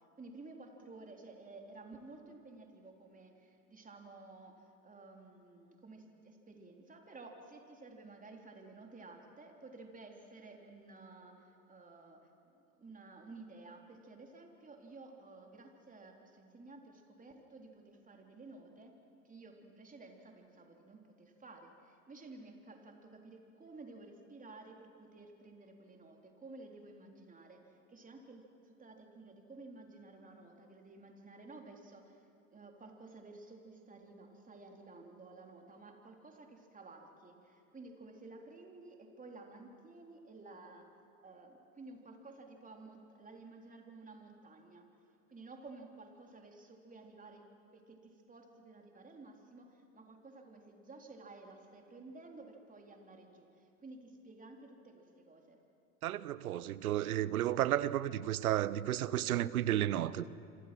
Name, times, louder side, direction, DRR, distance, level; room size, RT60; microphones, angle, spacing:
voice 1, 0.2-12.2 12.5-18.9 19.2-40.9 41.2-44.9 45.3-47.4 47.7-55.6, right 3 dB, 20° right, 3.8 m, -53 dB
voice 2, 56.0-60.3, right 12 dB, 80° right, 0.8 m, -32 dB
27.5 x 26.0 x 6.2 m
hypercardioid pair, 80°, 43 cm